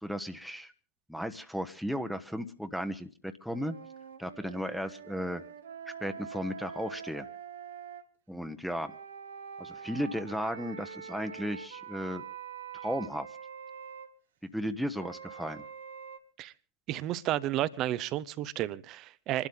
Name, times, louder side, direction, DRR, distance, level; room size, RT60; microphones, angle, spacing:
voice 1, 0.0-0.7 1.1-3.7 4.2-5.4 5.9-7.3 8.3-8.9 9.6-12.2 12.7-13.3 14.5-15.6, equal, ahead, 7 dB, 1.1 m, -35 dB
sound 1, 3.5-8.0 8.8-14.1 14.9-16.2, right 7 dB, 75° right, 1.4 m, -45 dB
voice 2, 16.9-19.5, right 14 dB, 45° right, 17 dB, 0.8 m, -32 dB
27.5 x 12.0 x 3.7 m, 0.40 s
figure-of-eight pair, 85°, 0 cm